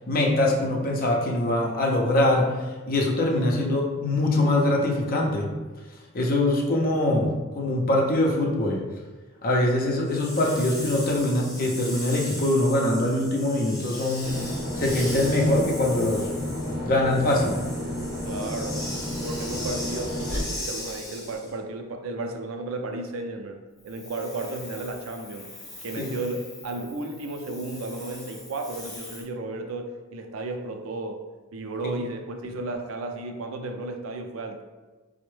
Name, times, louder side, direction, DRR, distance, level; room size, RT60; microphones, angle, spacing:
voice 1, 0.1-2.5 2.9-5.5 6.1-8.8 9.4-14.4 14.8-16.3 16.6-17.6 26.0-26.1 31.8-31.9, left 1 dB, 45° left, -1 dB, 0.6 m, -23 dB
Hiss, 10.0-21.5 23.8-29.2, left 1 dB, 20° left, 1.0 m, -39 dB
sound 1, 14.2-20.4, left 1 dB, 10° right, 1.3 m, -31 dB
voice 2, 18.2-18.9 19.2-25.5 25.8-31.3 31.5-34.6, right 2 dB, 75° right, 5 dB, 0.4 m, -34 dB
4.3 x 2.1 x 3.2 m, 1.2 s
head